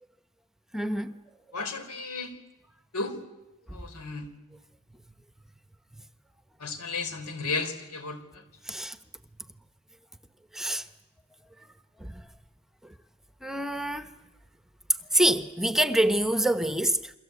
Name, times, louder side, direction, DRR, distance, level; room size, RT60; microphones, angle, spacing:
voice 1, 0.7-1.1 8.7-9.0 10.5-10.8 12.0-12.1 13.4-14.1 15.1-17.1, right 1 dB, ahead, 0.9 m, -26 dB
voice 2, 1.5-2.3 2.9-3.2 3.7-4.3 6.6-8.4, left 3 dB, 90° left, 4.0 m, -34 dB
29.5 x 23.0 x 8.3 m
head